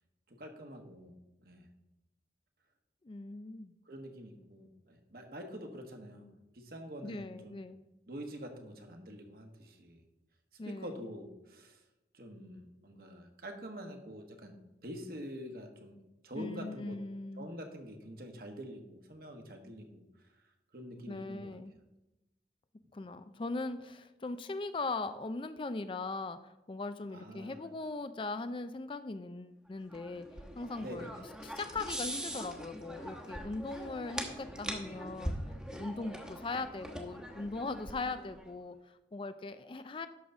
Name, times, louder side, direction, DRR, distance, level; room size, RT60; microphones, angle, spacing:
voice 1, 0.3-1.7 3.8-7.6 8.1-10.0 10.6-11.8 12.1-14.6 14.8-16.0 16.2-17.0 17.4-20.0 20.7-21.5 27.1-27.6 30.8-31.2, equal, 55° right, 4 dB, 1.4 m, -46 dB
voice 2, 3.0-3.7 7.0-7.8 10.6-10.9 16.4-17.5 21.1-21.7 22.9-30.3 30.6-31.1 31.4-40.1, left 3 dB, 30° left, 11 dB, 0.4 m, -40 dB
sound 1, 29.9-38.5, equal, 5° right, 1.1 m, -42 dB
11.0 x 4.0 x 6.9 m, 0.97 s
head